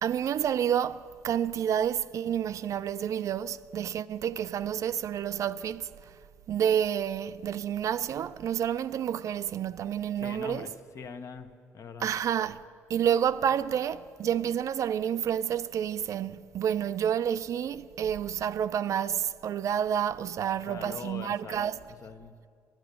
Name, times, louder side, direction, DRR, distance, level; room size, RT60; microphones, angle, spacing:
voice 1, 0.0-6.1 6.5-10.7 12.0-12.6 12.9-21.8, right 9 dB, 55° right, 0.4 m, -29 dB
voice 2, 10.2-11.5 11.7-12.1 20.7-21.6 22.0-22.3, left 5 dB, 50° left, 1.0 m, -42 dB
10.5 x 10.5 x 8.2 m
supercardioid pair, 65°, 7 cm